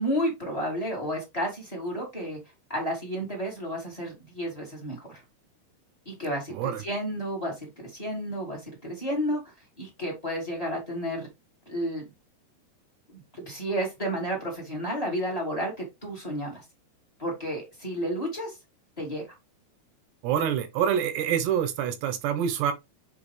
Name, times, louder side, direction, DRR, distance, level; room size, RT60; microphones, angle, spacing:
voice 1, 0.0-2.4 2.7-5.2 6.0-9.4 9.8-11.3 11.6-12.0 13.1-16.6 17.2-18.6 19.0-19.3, equal, 15° left, 1.5 m, -31 dB
voice 2, 6.5-6.8 20.2-22.7, right 9 dB, 80° right, 3.1 m, -26 dB
7.6 x 3.8 x 3.3 m
omnidirectional pair, 4.8 m